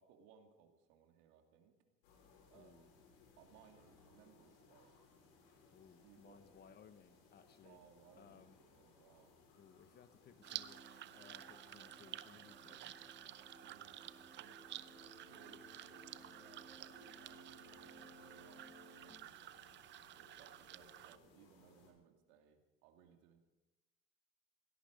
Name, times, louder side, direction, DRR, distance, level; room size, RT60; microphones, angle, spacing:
voice 1, 0.0-1.8 2.5-3.0 3.4-5.0 5.9-6.8 7.6-9.3 13.6-14.8 15.2-19.7 20.2-23.4, right 7 dB, 75° right, 4 dB, 2.6 m, -66 dB
sound 1, 2.0-21.9, left 4 dB, 80° left, 6.8 m, -67 dB
voice 2, 2.5-2.9 5.7-7.8 8.2-8.6 9.6-13.2, left 7 dB, 35° left, 11 dB, 1.1 m, -63 dB
sound 2, 10.4-19.1, right 1 dB, 10° right, 7.5 m, -61 dB
sound 3, 10.4-21.2, right 13 dB, 40° right, 0.6 m, -52 dB
17.5 x 13.0 x 5.1 m, 1.1 s
supercardioid pair, 120°, 29 cm